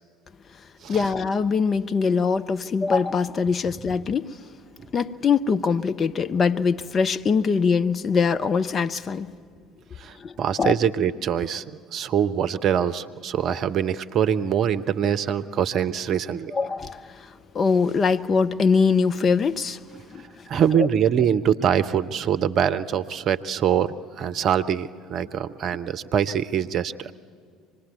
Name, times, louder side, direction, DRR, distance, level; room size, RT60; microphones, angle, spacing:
voice 1, 0.9-4.3 4.9-9.3 10.2-10.3 10.6-10.8 16.5-19.8 20.1-20.2, left 5 dB, 35° left, 0.7 m, -22 dB
voice 2, 10.0-11.6 11.9-16.5 20.5-27.1, right 8 dB, 45° right, 0.7 m, -24 dB
25.5 x 20.0 x 9.5 m
figure-of-eight pair, 60°, 0 cm